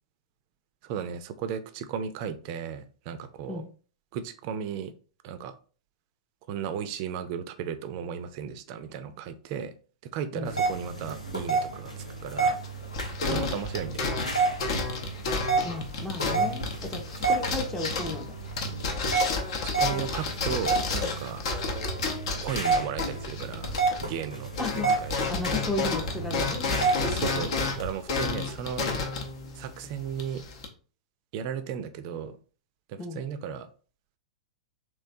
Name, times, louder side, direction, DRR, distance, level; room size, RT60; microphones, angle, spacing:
voice 1, 0.8-3.6 4.1-4.9 5.2-5.5 6.5-9.7 10.0-12.6 13.2-14.2 19.6-21.4 22.4-23.7 24.0-24.5 25.0-25.2 27.1-27.5 27.7-28.9 29.5-30.4 31.3-32.4 32.9-33.7, right 8 dB, 40° right, 11 dB, 0.4 m, -35 dB
sound 1, 10.4-27.9, right 4 dB, 85° left, 0.7 m, -31 dB
sound 2, 12.6-24.3 24.5-30.7, left 3 dB, 55° left, 0.7 m, -31 dB
voice 2, 15.6-18.4 24.6-24.9 25.3-26.7 27.0-27.2 33.0-33.2, left 2 dB, 10° left, 3 dB, 0.6 m, -34 dB
3.2 x 3.2 x 2.6 m, 0.39 s
figure-of-eight pair, 100°, 4 cm